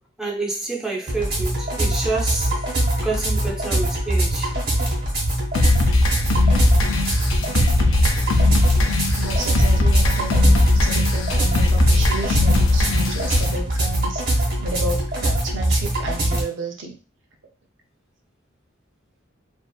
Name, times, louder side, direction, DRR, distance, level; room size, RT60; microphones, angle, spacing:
voice 1, 0.2-2.6 3.0-4.5, right 3 dB, 5° right, 0.5 m, -28 dB
sound 1, 1.1-16.4, right 1 dB, 50° right, 1.0 m, -23 dB
sound 2, 5.6-13.5, left 2 dB, 80° left, 0.5 m, -19 dB
voice 2, 9.1-17.0, right 2 dB, 65° right, 0.5 m, -32 dB
2.6 x 2.4 x 2.3 m
head